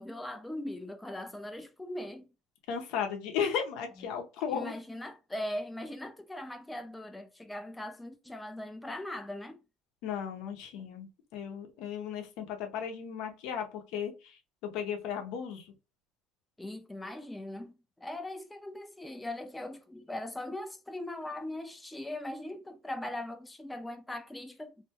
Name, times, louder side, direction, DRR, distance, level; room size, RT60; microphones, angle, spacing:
voice 1, 0.0-2.3 4.5-9.6 16.6-24.8, left 1 dB, 10° left, 0.3 m, -40 dB
voice 2, 2.7-4.7 10.0-11.1 11.3-15.6, left 7 dB, 70° left, 0.6 m, -35 dB
2.6 x 2.2 x 2.8 m
supercardioid pair, 110°, 0 cm